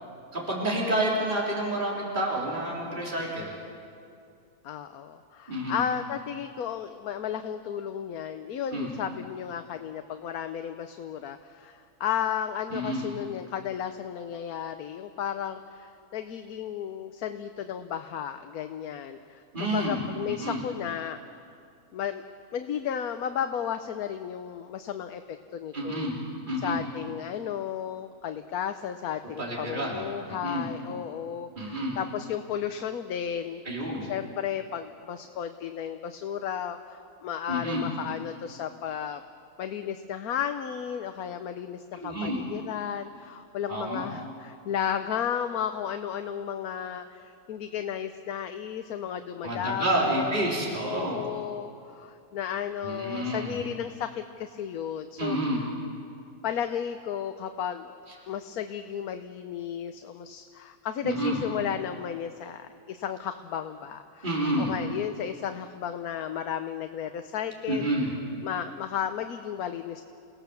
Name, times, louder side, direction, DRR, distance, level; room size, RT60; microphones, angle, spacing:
voice 1, 0.3-3.5 5.5-5.8 8.7-8.9 12.7-13.0 19.5-20.0 20.3-20.6 25.7-26.1 26.5-26.8 29.4-30.0 30.3-30.7 31.6-32.0 33.7-34.0 37.5-37.9 41.9-42.4 43.7-44.1 49.4-51.2 52.8-53.6 55.2-55.6 61.0-61.4 64.2-64.7 67.7-68.1, right 1 dB, 30° right, -4 dB, 3.7 m, -29 dB
voice 2, 4.6-21.2 21.9-22.2 22.5-26.1 26.6-39.2 39.6-50.5 50.8-55.7 56.4-57.9 58.3-67.9 68.4-70.0, left 9 dB, 75° left, 8 dB, 1.2 m, -34 dB
29.5 x 17.5 x 7.0 m, 2.5 s
omnidirectional pair, 1.6 m